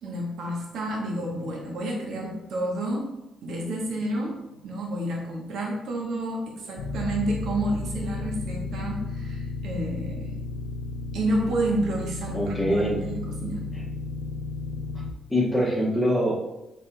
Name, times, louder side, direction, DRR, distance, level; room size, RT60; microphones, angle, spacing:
voice 1, 0.0-3.1 3.4-10.3 11.1-13.6, right 1 dB, 75° right, -1 dB, 1.0 m, -30 dB
sound 1, 6.8-15.1, left 3 dB, 85° left, 0.3 m, -33 dB
voice 2, 12.3-13.0 15.3-16.3, equal, 10° left, -10 dB, 1.0 m, -23 dB
4.2 x 3.5 x 2.3 m, 0.92 s
cardioid pair, 90°, 0 cm